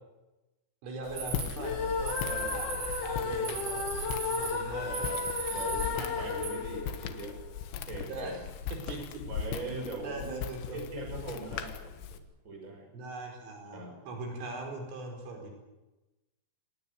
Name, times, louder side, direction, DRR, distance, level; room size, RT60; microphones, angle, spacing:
voice 1, 0.8-2.2 2.5-5.1 8.1-8.4 8.7-9.2 9.6-10.9 12.9-15.5, right 2 dB, 80° right, 2 dB, 7.3 m, -41 dB
Walk footsteps, 1.0-12.2, left 8 dB, 85° left, 3.8 m, -40 dB
sound 1, 1.2-6.5, right 6 dB, 65° right, 7.6 m, -39 dB
sound 2, 1.6-7.7, left 5 dB, 65° left, 1.5 m, -34 dB
voice 2, 2.2-2.6 4.8-5.2 5.5-7.4 7.7-8.4 9.3-12.9 13.7-14.0, right 2 dB, 15° right, 3 dB, 6.2 m, -41 dB
26.5 x 19.5 x 8.1 m, 1.1 s
omnidirectional pair, 5.5 m